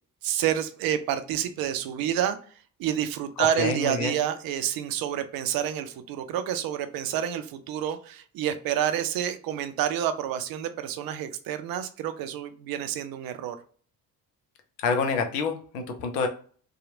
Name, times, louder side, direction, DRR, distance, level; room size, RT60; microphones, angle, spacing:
voice 1, 0.2-2.4 2.8-13.6, right 10 dB, 50° right, 10 dB, 0.5 m, -28 dB
voice 2, 3.4-4.2 14.8-16.3, left 4 dB, 75° left, 5 dB, 0.6 m, -27 dB
2.8 x 2.3 x 2.5 m, 0.43 s
hypercardioid pair, 50°, 48 cm